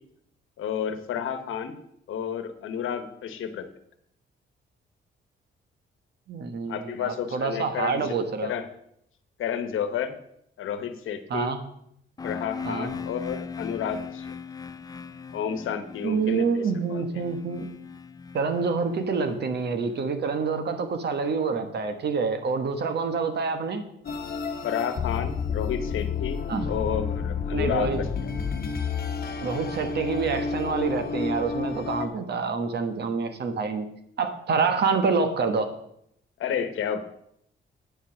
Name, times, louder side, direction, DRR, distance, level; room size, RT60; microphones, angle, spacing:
voice 1, 0.6-1.8 2.1-3.7 6.7-8.1 8.4-8.6 9.4-10.1 10.6-11.5 12.2-14.4 15.3-17.0 24.6-26.4 26.6-28.1 33.2-33.3 36.4-37.0, left 8 dB, 90° left, 9 dB, 1.1 m, -31 dB
voice 2, 6.3-8.5 11.3-11.6 12.6-12.9 16.0-17.7 18.3-23.8 26.5-26.6 27.5-28.0 29.4-33.9 34.2-35.7, right 5 dB, 55° right, 8 dB, 1.3 m, -27 dB
sound 1, 12.2-20.0, left 6 dB, 20° left, 0.4 m, -39 dB
sound 2, 24.0-32.1, left 5 dB, 50° left, 1.1 m, -30 dB
sound 3, 26.5-30.5 30.8-30.9, right 4 dB, 30° right, 0.8 m, -41 dB
9.2 x 7.4 x 6.3 m, 0.73 s
wide cardioid pair, 155°, 20 cm